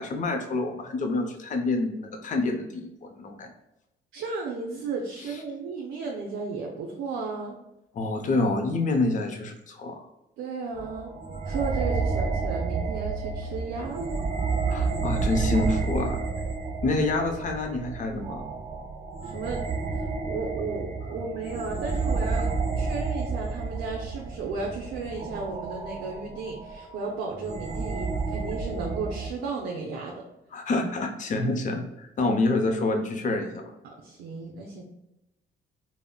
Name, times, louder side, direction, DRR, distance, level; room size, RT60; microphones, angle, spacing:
voice 1, 0.0-3.5 7.9-10.0 14.7-16.2 16.8-18.5 30.5-33.6, left 2 dB, 40° left, 4 dB, 0.5 m, -27 dB
voice 2, 4.1-7.6 10.4-11.1 11.5-14.2 19.2-19.6 19.9-30.2 33.8-34.8, right 4 dB, 90° right, -1 dB, 0.5 m, -34 dB
sound 1, 10.7-29.3, right 4 dB, 35° right, 0.4 m, -30 dB
3.6 x 2.0 x 2.2 m, 0.91 s
cardioid pair, 90°, 20 cm